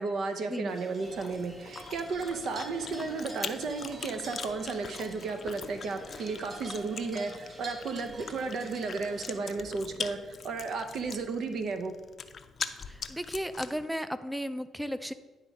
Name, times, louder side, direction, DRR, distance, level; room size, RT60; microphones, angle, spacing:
voice 1, 0.0-11.9, right 4 dB, 65° right, 7 dB, 0.7 m, -34 dB
sound 1, 0.7-9.4, right 2 dB, 40° right, 1.1 m, -47 dB
Chewing mastication, 1.0-13.9, left 6 dB, 45° left, 0.5 m, -43 dB
voice 2, 12.9-15.1, equal, 5° right, 12 dB, 0.4 m, -34 dB
10.0 x 3.6 x 5.3 m, 1.3 s
cardioid pair, 90°, 0 cm